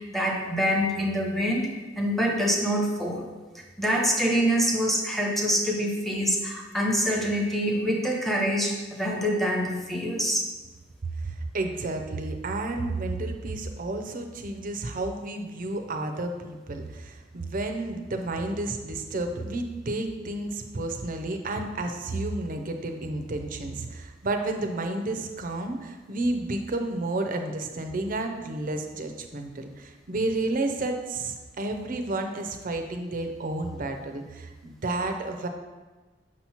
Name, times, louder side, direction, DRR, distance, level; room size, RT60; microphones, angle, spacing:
voice 1, 0.0-1.7 2.0-3.2 3.5-10.4, equal, ahead, -1 dB, 0.8 m, -25 dB
voice 2, 11.2-35.5, right 2 dB, 45° right, 5 dB, 0.6 m, -31 dB
6.2 x 3.0 x 5.7 m, 1.2 s
head